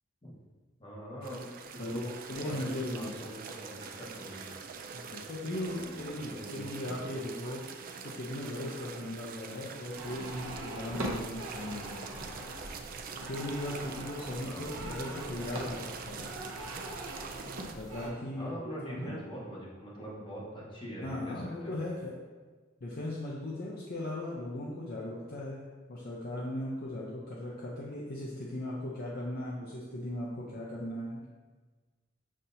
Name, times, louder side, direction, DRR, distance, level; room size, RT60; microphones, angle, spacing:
voice 1, 0.8-1.4 1.7-4.5 5.6-6.7 7.0-7.1 14.4-15.7 18.4-21.8, equal, 25° left, -6 dB, 1.3 m, -43 dB
sound 1, 1.2-17.7, right 5 dB, 45° right, 0.4 m, -45 dB
voice 2, 2.3-3.2 4.9-12.1 13.3-16.3 17.7-19.2 21.0-22.1 22.8-31.3, left 1 dB, 50° left, -4 dB, 0.6 m, -38 dB
sound 2, 3.4-20.3, equal, 10° right, 0.7 m, -60 dB
sound 3, 9.9-18.1, right 1 dB, 85° right, 0.8 m, -41 dB
7.3 x 2.7 x 2.6 m, 1.3 s
head